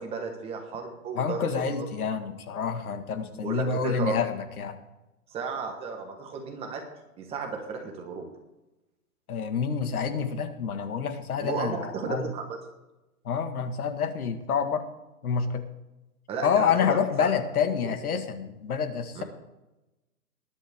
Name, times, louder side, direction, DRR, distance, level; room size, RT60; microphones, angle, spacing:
voice 1, 0.0-1.8 3.3-4.2 5.3-6.8 7.2-8.2 11.4-12.4 16.3-17.3 19.1-19.2, right 4 dB, 15° right, 3 dB, 1.3 m, -34 dB
voice 2, 1.2-4.8 9.3-12.3 13.3-14.9 15.2-15.7 16.4-19.2, left 6 dB, 70° left, 8 dB, 1.9 m, -28 dB
19.5 x 11.0 x 3.6 m, 0.99 s
hypercardioid pair, 160°, 45 cm